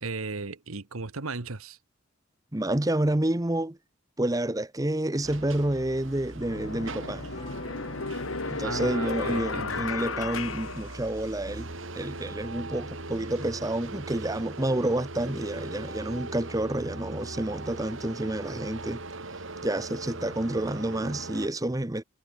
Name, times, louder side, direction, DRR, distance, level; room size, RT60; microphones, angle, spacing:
voice 1, 0.0-1.8 8.6-9.9, right 3 dB, 85° right, 1.3 m, -36 dB
voice 2, 2.5-3.8 4.2-7.3 8.4-19.0 19.6-22.0, right 1 dB, 15° right, 0.8 m, -29 dB
sound 1, 5.2-21.5, right 2 dB, 70° right, 2.6 m, -40 dB
sound 2, 6.4-11.6, left 4 dB, 75° left, 1.7 m, -34 dB
sound 3, 7.3-11.1, left 1 dB, 25° left, 4.0 m, -49 dB
head